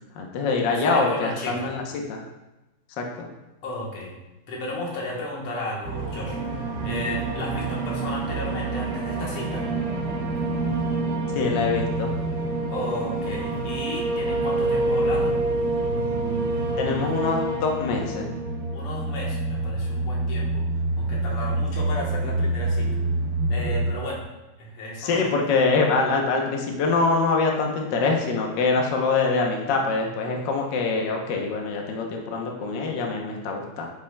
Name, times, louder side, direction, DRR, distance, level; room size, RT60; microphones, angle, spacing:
voice 1, 0.2-2.2 3.0-3.3 11.3-12.1 16.8-18.3 25.0-33.9, left 4 dB, 60° left, 1 dB, 1.4 m, -24 dB
voice 2, 0.7-1.7 3.6-4.2 4.5-6.4 6.8-9.7 12.7-15.4 18.7-20.6 21.0-22.9 23.5-24.2 24.6-25.3, left 1 dB, 90° left, -3 dB, 2.2 m, -33 dB
sound 1, 5.8-23.9, right 2 dB, 50° right, 0.8 m, -27 dB
7.8 x 6.0 x 2.2 m, 1.0 s
omnidirectional pair, 2.4 m